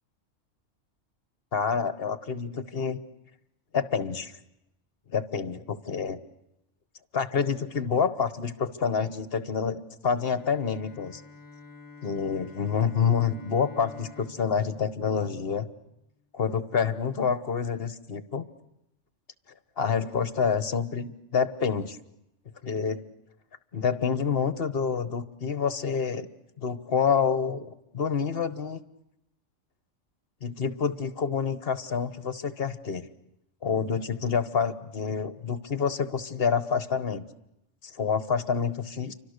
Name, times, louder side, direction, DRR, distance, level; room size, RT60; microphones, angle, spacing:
voice 1, 1.5-3.0 3.7-4.4 5.1-6.2 7.1-11.2 12.0-15.7 16.3-18.4 19.8-22.0 22.6-23.0 23.7-26.3 26.6-28.8 30.4-33.0 33.6-37.2 37.9-39.1, left 6 dB, 50° left, 13 dB, 1.3 m, -28 dB
Bowed string instrument, 10.3-16.0, left 4 dB, 15° left, 1.1 m, -49 dB
30.0 x 25.0 x 6.6 m, 0.86 s
omnidirectional pair, 1.3 m